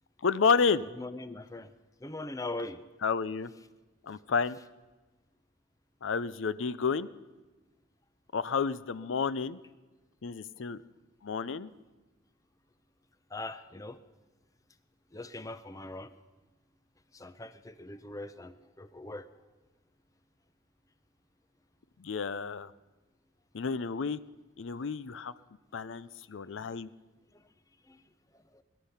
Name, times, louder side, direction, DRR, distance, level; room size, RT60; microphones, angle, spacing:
voice 1, 0.2-0.8 3.0-3.5 4.0-4.6 6.0-7.1 8.3-9.6 10.2-10.8 11.2-11.7 22.0-22.7 23.5-24.2 24.6-25.3 25.7-26.9, left 5 dB, 70° left, 16 dB, 0.5 m, -30 dB
voice 2, 1.0-1.7 2.0-2.8 13.3-14.0 15.1-16.1 17.1-19.3 27.9-28.0 28.5-28.6, left 2 dB, 15° left, 12 dB, 0.6 m, -41 dB
21.5 x 11.5 x 5.7 m, 1.2 s
head